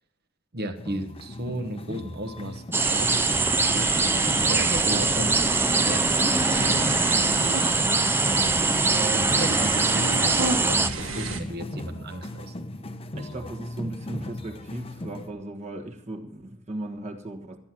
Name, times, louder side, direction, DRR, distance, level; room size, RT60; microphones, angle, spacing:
voice 1, 0.5-4.1 4.4-6.9 9.4-12.5, right 1 dB, 50° right, 6 dB, 1.3 m, -35 dB
sound 1, 0.7-15.3, left 1 dB, 30° left, 0.9 m, -38 dB
sound 2, 2.7-10.9, right 3 dB, 10° right, 0.5 m, -23 dB
sound 3, 2.8-11.4, right 3 dB, 85° right, 1.6 m, -31 dB
voice 2, 8.9-9.9 13.1-17.6, right 2 dB, 35° right, 4 dB, 1.4 m, -36 dB
13.0 x 9.7 x 6.0 m, 0.75 s
head